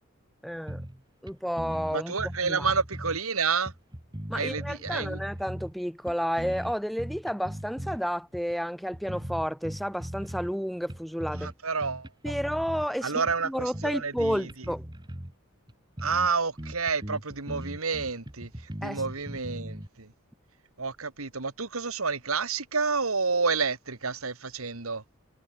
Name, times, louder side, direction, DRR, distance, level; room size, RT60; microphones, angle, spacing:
voice 1, 0.4-0.8 1.2-2.1 2.4-2.7 4.3-11.5 12.2-14.9 18.8-19.0, equal, ahead, 2.6 m, -31 dB
sound 1, 0.7-1.0 1.3-1.4 1.6-3.2 3.7-5.7 6.1-8.0 8.3-8.5 8.9-10.6 10.9-11.5 11.8-12.9 13.3-15.3 15.7-15.8 16.0-16.3 16.6-19.9, equal, 20° right, 2.2 m, -39 dB
voice 2, 1.9-3.7 4.3-5.2 11.4-12.3 13.0-14.5 16.0-18.5 18.8-20.1 20.8-25.0, right 5 dB, 90° right, 2.4 m, -29 dB
head